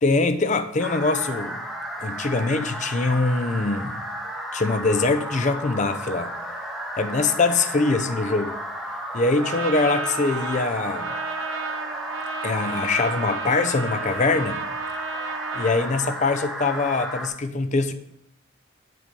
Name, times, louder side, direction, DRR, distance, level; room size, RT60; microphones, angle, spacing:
voice 1, 0.0-1.6 2.0-4.0 4.5-6.3 7.0-8.6 9.1-11.1 12.4-14.6 15.5-17.9, left 3 dB, 35° left, 0.5 m, -23 dB
sound 1, 0.8-17.3, equal, ahead, 0.8 m, -33 dB
Trumpet, 9.4-15.9, right 5 dB, 75° right, 0.6 m, -33 dB
7.7 x 3.7 x 6.7 m
head